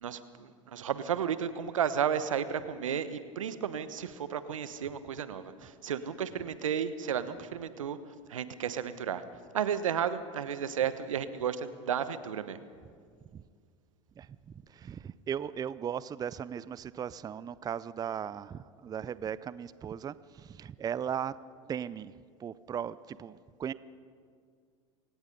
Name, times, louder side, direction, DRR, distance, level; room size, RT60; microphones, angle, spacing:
voice 1, 0.0-8.0 8.3-9.2 9.5-12.6, right 8 dB, 80° right, 13 dB, 1.1 m, -33 dB
voice 2, 14.2-21.3 21.7-22.1 22.4-23.7, right 8 dB, 25° right, 18 dB, 0.5 m, -37 dB
28.0 x 17.5 x 5.4 m, 2.1 s
hypercardioid pair, 85°, 16 cm